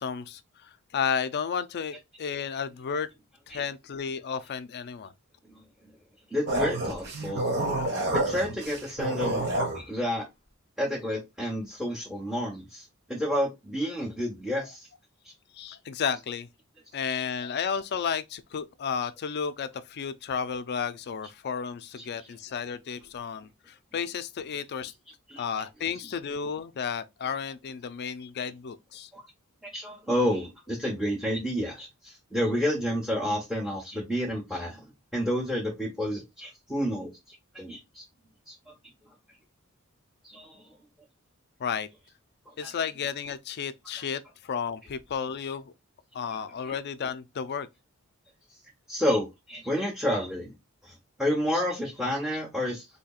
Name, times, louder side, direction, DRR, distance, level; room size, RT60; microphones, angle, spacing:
voice 1, 0.0-3.1 3.5-5.1 15.5-16.5 16.9-24.9 25.4-29.1 41.6-41.9 42.6-45.7 46.1-47.7, left 7 dB, 50° left, 0.4 m, -32 dB
voice 2, 6.3-7.4 8.1-9.5 9.7-10.2 10.8-14.9 17.1-17.2 22.2-22.3 25.3-25.4 29.1-29.2 29.6-38.0 38.5-38.7 40.2-40.7 42.5-42.7 46.2-46.4 48.9-50.5 50.8-52.9, equal, ahead, 1.0 m, -30 dB
sound 1, 6.5-9.8, right 1 dB, 50° right, 1.1 m, -28 dB
4.3 x 2.8 x 2.3 m
head